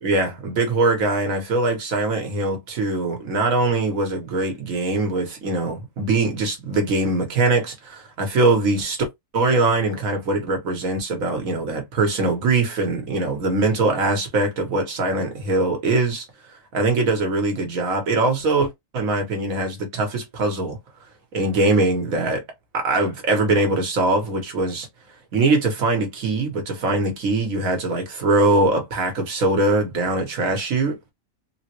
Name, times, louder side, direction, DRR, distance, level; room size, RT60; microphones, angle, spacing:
voice 1, 0.0-9.0 9.3-20.8 21.3-22.4 22.7-24.9 25.3-31.0, right 2 dB, 90° right, 1.5 m, -22 dB
3.6 x 2.1 x 2.9 m
omnidirectional pair, 1.4 m